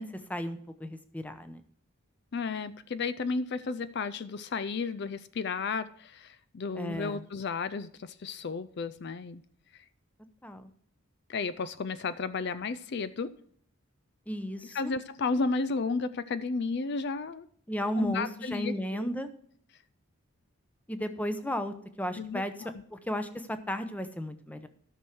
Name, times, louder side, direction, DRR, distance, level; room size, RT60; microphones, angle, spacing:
voice 1, 0.0-1.6 6.7-7.2 10.4-10.7 14.3-14.8 17.7-19.3 20.9-22.5 22.9-24.7, equal, 5° left, 9 dB, 0.7 m, -34 dB
voice 2, 2.3-9.4 11.3-13.3 14.7-17.5 18.0-19.1 22.2-22.7, left 4 dB, 50° left, 14 dB, 0.4 m, -33 dB
13.5 x 6.3 x 4.4 m, 0.63 s
head